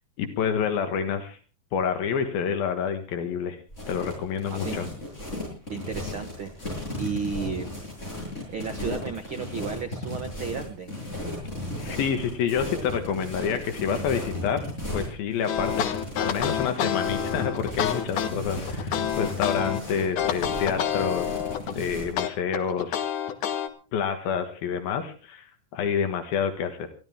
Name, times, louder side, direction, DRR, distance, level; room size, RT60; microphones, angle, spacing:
voice 1, 0.2-1.4 1.7-3.6 3.9-4.9 11.7-14.7 14.9-21.4 21.8-23.1 23.9-25.4 25.7-26.9, left 7 dB, 80° left, 7 dB, 3.4 m, -28 dB
sound 1, 3.7-22.1, left 1 dB, 20° left, 8.4 m, -35 dB
voice 2, 4.4-4.8 5.7-6.7 6.9-7.7 8.5-10.9, right 6 dB, 80° right, 6 dB, 1.1 m, -33 dB
sound 2, 15.5-19.8 20.2-21.8 22.2-23.7, left 9 dB, 65° left, 2.7 m, -28 dB
22.0 x 15.0 x 3.6 m, 0.36 s
omnidirectional pair, 4.2 m